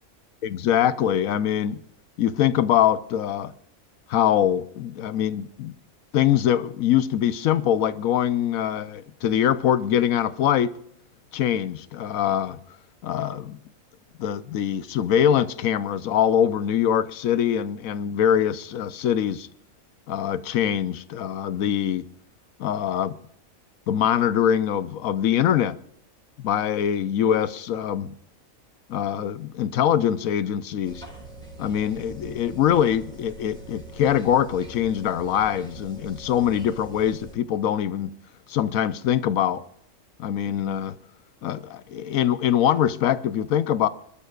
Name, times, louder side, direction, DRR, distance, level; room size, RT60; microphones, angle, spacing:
voice 1, 0.4-1.8 2.2-3.5 4.1-5.8 6.1-10.7 11.3-12.6 13.0-13.6 14.2-19.5 20.1-22.0 22.6-23.2 23.9-25.8 26.4-28.1 28.9-31.0 31.6-38.1 38.5-39.6 40.2-40.9 41.4-43.9, left 10 dB, 90° left, 1.2 m, -23 dB
sound 1, 30.8-37.3, right 2 dB, 5° left, 4.4 m, -43 dB
26.5 x 12.5 x 2.4 m
omnidirectional pair, 1.4 m